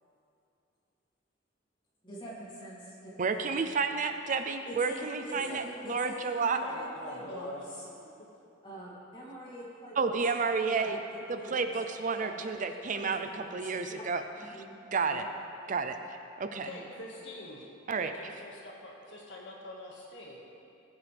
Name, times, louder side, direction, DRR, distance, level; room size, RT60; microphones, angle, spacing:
voice 1, 2.0-3.2 4.6-7.8 8.6-10.1 10.7-11.7 12.1-14.0 14.4-14.7 15.0-15.2 15.9-16.0 16.6-16.8, right 1 dB, 25° left, -7 dB, 3.0 m, -44 dB
voice 2, 3.2-6.6 10.0-11.0 11.3-14.2 14.5-14.6 14.9-15.2 15.7-16.7 17.9-18.1, right 4 dB, 40° right, 7 dB, 0.5 m, -31 dB
voice 3, 6.6-7.6 16.6-17.7 18.0-20.4, left 1 dB, 70° left, -3 dB, 1.9 m, -44 dB
19.5 x 7.6 x 3.5 m, 2.7 s
head